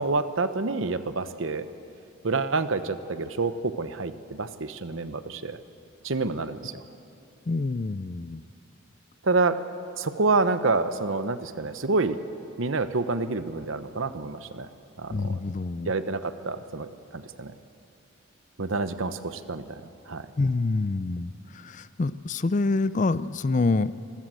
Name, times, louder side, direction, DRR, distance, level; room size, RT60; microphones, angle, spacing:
voice 1, 0.0-1.7 2.2-5.6 6.0-6.8 9.2-9.6 9.9-12.2 12.6-14.7 15.0-15.2 15.9-17.5 18.6-19.8 20.1-20.3, right 3 dB, 70° right, 11 dB, 0.9 m, -28 dB
voice 2, 7.5-8.4 15.1-15.9 20.4-23.9, left 3 dB, 35° left, 15 dB, 0.4 m, -26 dB
25.0 x 16.0 x 7.7 m, 2.7 s
head